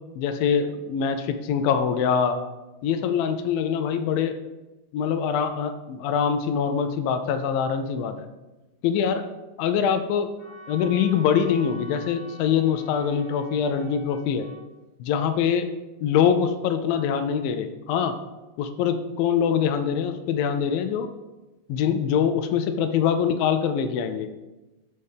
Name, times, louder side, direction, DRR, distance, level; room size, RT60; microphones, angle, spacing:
voice 1, 0.2-2.4 2.8-4.4 4.9-8.3 8.8-9.2 9.6-10.3 10.7-14.5 15.0-15.7 16.0-18.2 18.6-21.1 21.7-24.3, left 7 dB, 80° left, 8 dB, 2.3 m, -24 dB
Wind instrument woodwind instrument, 10.4-14.6, right 2 dB, 55° left, 3.8 m, -45 dB
13.0 x 5.6 x 3.5 m, 1.1 s
omnidirectional pair, 4.1 m